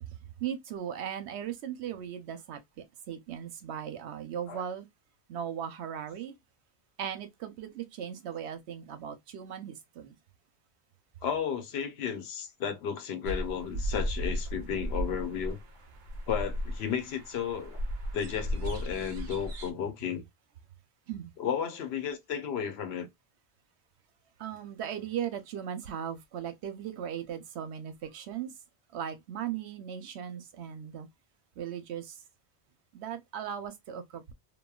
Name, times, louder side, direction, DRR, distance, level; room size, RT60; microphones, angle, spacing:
voice 1, 0.0-4.9 5.3-6.3 7.0-10.1 21.1-21.3 24.4-28.6 28.9-31.1 31.6-32.2 32.9-34.2, right 9 dB, 85° right, 0.9 m, -38 dB
voice 2, 11.2-15.6 16.3-17.8 18.1-20.2 21.4-23.1, left 8 dB, 75° left, 0.9 m, -33 dB
sound 1, 13.2-19.7, equal, 55° right, 0.6 m, -35 dB
3.0 x 2.2 x 2.2 m
omnidirectional pair, 1.1 m